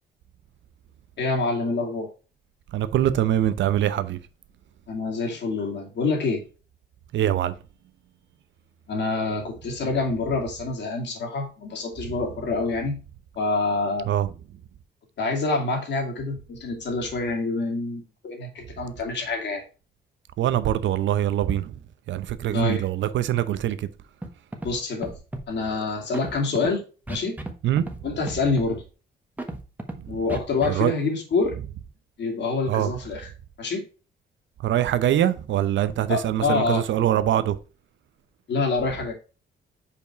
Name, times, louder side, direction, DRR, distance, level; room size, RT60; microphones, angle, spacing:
voice 1, 1.2-2.1 4.9-6.4 8.9-13.0 13.4-14.1 15.2-19.6 22.5-22.9 24.6-25.2 25.5-26.8 27.1-27.4 28.0-28.8 30.1-31.6 32.2-33.3 33.6-33.8 36.1-36.8 38.5-39.1, left 3 dB, 60° left, 2.4 m, -26 dB
voice 2, 2.7-4.2 7.1-7.5 14.1-14.3 20.4-21.8 22.1-23.9 27.6-27.9 30.0-30.2 30.7-30.9 32.7-32.9 34.6-37.6, right 11 dB, 70° right, 0.7 m, -23 dB
Scratching (performance technique), 24.2-24.3 24.5-24.7 25.0-25.4 26.1-26.7 27.1-27.5 27.8-28.0 28.3-28.7 29.4-29.9 30.3-30.7, right 1 dB, 10° right, 1.3 m, -33 dB
5.3 x 4.7 x 4.7 m
cardioid pair, 90°, 20 cm